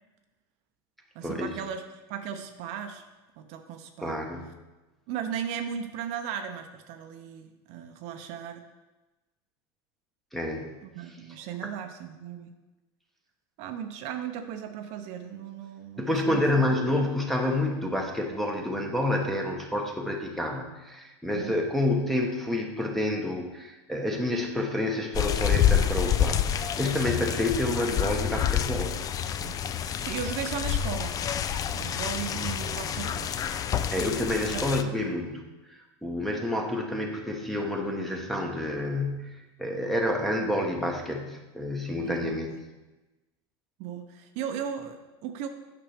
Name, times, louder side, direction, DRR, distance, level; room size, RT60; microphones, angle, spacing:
voice 1, 1.1-1.8 2.1-3.0 3.4-4.2 5.1-8.6 10.9-12.5 13.6-16.4 21.3-21.5 27.2-27.3 29.4-29.6 30.0-31.2 31.7-33.4 34.5-34.7 42.0-42.4 43.8-45.5, right 8 dB, 55° right, 6 dB, 0.7 m, -36 dB
voice 2, 4.0-4.4 10.3-10.7 11.6-11.7 16.0-28.9 33.9-35.4 35.7-42.6, left 1 dB, ahead, 1 dB, 1.0 m, -29 dB
sound 1, 25.1-34.8, left 9 dB, 25° left, 0.3 m, -28 dB
8.7 x 6.0 x 3.4 m, 1.1 s
supercardioid pair, 130°, 13 cm